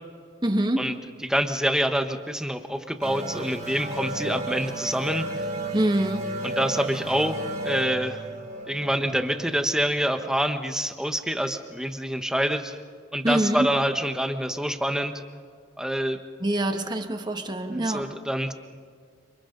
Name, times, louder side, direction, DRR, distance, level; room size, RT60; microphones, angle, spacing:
voice 1, 0.4-0.8 5.7-6.3 13.2-13.7 16.4-18.1, right 1 dB, 25° right, 6 dB, 1.6 m, -25 dB
voice 2, 1.2-5.2 6.4-8.2 8.7-12.8 13.1-15.1 15.8-16.2 17.7-18.5, equal, 5° right, 7 dB, 1.1 m, -26 dB
sound 1, 3.0-10.3, right 1 dB, 40° right, 3.4 m, -34 dB
29.5 x 27.0 x 3.9 m, 2.1 s
head